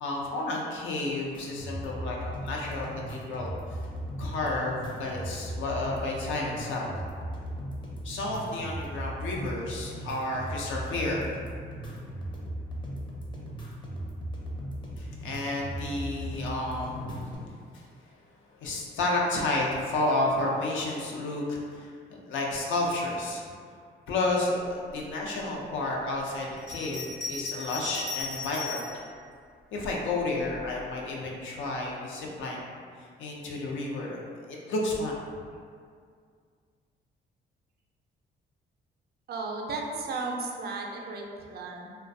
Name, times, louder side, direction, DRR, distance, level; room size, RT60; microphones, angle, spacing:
voice 1, 0.0-3.5 4.2-6.9 8.0-11.4 15.0-17.9 18.6-23.4 24.1-28.8 29.7-32.7 33.2-35.2, left 2 dB, 75° left, -2 dB, 0.5 m, -31 dB
sound 1, 1.3-17.3, right 1 dB, 25° left, 0.5 m, -37 dB
Bell, 26.6-29.0 29.8-30.7, left 4 dB, 60° left, 0.9 m, -37 dB
voice 2, 39.3-41.2 41.5-41.9, right 3 dB, 55° right, 1 dB, 0.4 m, -34 dB
2.3 x 2.1 x 2.5 m, 2.1 s
cardioid pair, 90°, 20 cm